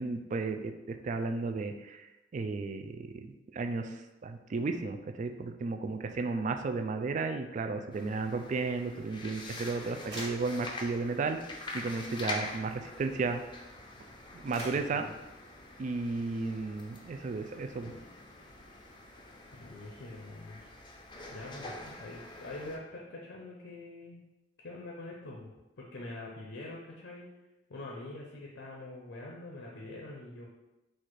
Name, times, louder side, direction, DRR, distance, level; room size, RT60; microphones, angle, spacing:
voice 1, 0.0-11.4 11.7-13.4 14.3-15.1 15.8-17.9, right 3 dB, 40° right, 7 dB, 0.3 m, -34 dB
sound 1, 7.9-22.8, left 2 dB, 25° left, 0.5 m, -45 dB
sound 2, 10.0-11.0 11.4-11.6 11.9-13.0 13.4-13.5 14.1-15.3 16.2-16.3, right 1 dB, 70° right, 1.4 m, -46 dB
voice 2, 14.6-15.1 19.0-19.2 19.5-21.0 21.3-24.2 24.6-25.5 25.8-27.3 27.7-30.5, left 2 dB, 75° left, -2 dB, 0.6 m, -45 dB
4.2 x 2.4 x 4.6 m, 1.0 s
head